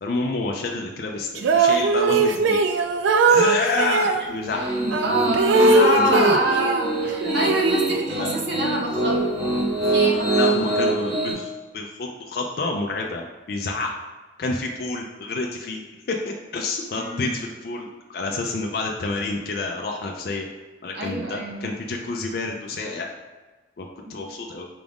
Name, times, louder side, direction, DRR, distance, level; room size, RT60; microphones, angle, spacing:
voice 1, 0.0-2.6 3.3-4.8 5.5-6.4 8.2-8.5 10.0-13.9 14.4-20.5 20.8-23.1 23.8-24.7, left 3 dB, 55° left, 1 dB, 0.4 m, -28 dB
sound 1, 1.4-4.2 4.9-6.9 7.2-8.3, right 4 dB, 85° right, 0.3 m, -20 dB
Piano, 4.5-11.3, right 2 dB, 30° right, 1.2 m, -24 dB
voice 2, 4.5-9.3 9.8-10.4 16.9-17.4 20.9-21.7 24.0-24.1, right 2 dB, 65° right, -1 dB, 0.8 m, -26 dB
5.0 x 2.4 x 3.5 m, 1.2 s
head